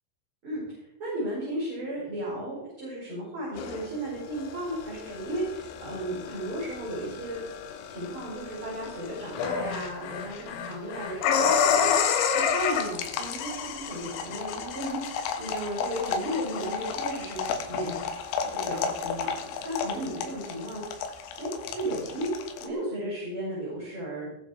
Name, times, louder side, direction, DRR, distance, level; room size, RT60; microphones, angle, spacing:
voice 1, 0.4-7.4 7.9-17.4 17.7-18.0 18.5-19.3 19.6-22.3 22.6-24.3, right 1 dB, 25° right, -7 dB, 6.4 m, -35 dB
sound 1, 3.6-22.7, left 6 dB, 85° left, 4.0 m, -30 dB
20.5 x 9.2 x 4.8 m, 0.85 s
omnidirectional pair, 5.9 m